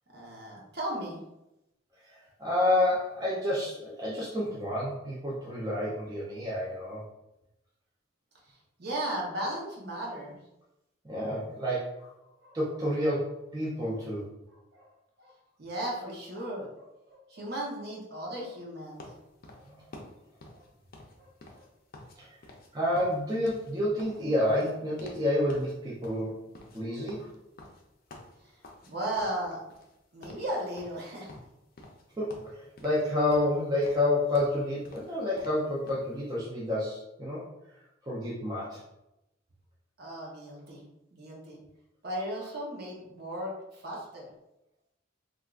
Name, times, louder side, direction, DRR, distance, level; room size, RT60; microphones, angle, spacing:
voice 1, 0.1-1.2 8.5-10.4 12.4-12.6 14.5-14.9 15.2-15.3 15.6-19.1 19.5-19.6 21.2-21.3 21.5-21.6 22.1-22.2 28.4-29.6 30.1-31.3 40.0-40.8 41.1-41.6 42.0-44.3, right 1 dB, 55° right, -3 dB, 0.9 m, -36 dB
voice 2, 2.0-7.0 11.0-12.1 12.5-14.3 19.6-19.9 22.2-22.3 22.7-26.4 26.7-27.3 32.2-37.5 38.1-38.8, left 1 dB, 20° right, -6 dB, 0.5 m, -29 dB
sound 1, 19.0-22.2 22.4-22.7 22.9-25.2 25.5-25.7 26.0-28.9 29.2-30.0 30.2-30.5 30.8-32.0 32.3-33.0 33.3-36.1, left 2 dB, 45° left, 0.5 m, -50 dB
3.4 x 2.4 x 2.4 m, 0.89 s
head